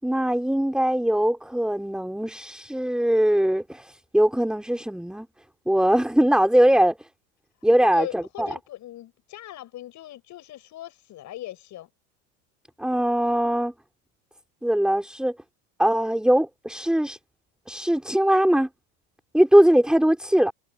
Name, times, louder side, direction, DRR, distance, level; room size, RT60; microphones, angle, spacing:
voice 1, 0.0-5.3 5.7-6.9 7.6-8.5 12.8-13.7 14.6-15.3 15.8-17.2 17.7-18.7 19.3-20.5, right 1 dB, ahead, 4.8 m, -21 dB
voice 2, 7.8-11.9, left 13 dB, 45° left, 7.6 m, -39 dB
supercardioid pair, 115°, 39 cm